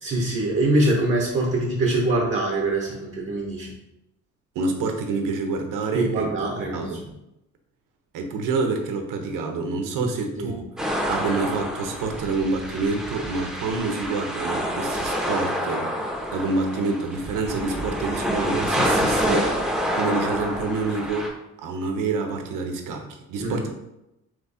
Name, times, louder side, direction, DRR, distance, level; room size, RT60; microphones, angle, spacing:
voice 1, 0.0-3.7 5.9-7.0 10.4-10.6 23.4-23.7, right 2 dB, 40° right, -2 dB, 1.0 m, -24 dB
voice 2, 4.5-6.3 6.7-7.0 8.1-15.9 16.3-21.3 21.6-23.7, right 3 dB, 85° right, 4 dB, 0.8 m, -27 dB
sound 1, 10.8-21.3, equal, ahead, 0.8 m, -27 dB
3.6 x 3.1 x 4.2 m, 0.90 s
cardioid pair, 110°, 31 cm